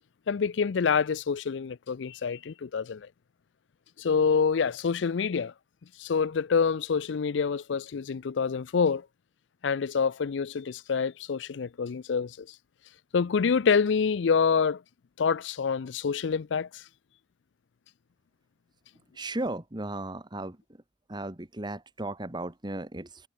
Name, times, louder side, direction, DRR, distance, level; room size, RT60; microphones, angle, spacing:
voice 1, 0.3-3.1 4.0-5.5 6.0-9.0 9.6-12.4 13.1-14.8 15.2-16.7, left 6 dB, 75° left, 0.5 m, -26 dB
voice 2, 19.1-20.8 21.1-23.3, right 2 dB, 25° right, 1.6 m, -36 dB
head